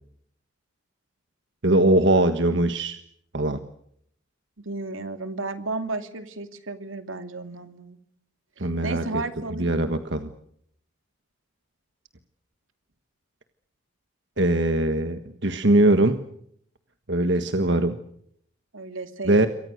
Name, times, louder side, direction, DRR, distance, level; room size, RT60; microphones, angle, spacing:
voice 1, 1.6-3.0 3.3-3.6 8.6-9.2 9.5-10.3 14.4-16.2 17.1-18.0 19.2-19.5, right 1 dB, 60° right, 8 dB, 1.5 m, -21 dB
voice 2, 4.6-8.0 8.6-9.7 18.7-19.5, right 3 dB, 80° right, 8 dB, 2.6 m, -33 dB
28.0 x 24.0 x 6.6 m, 0.69 s
head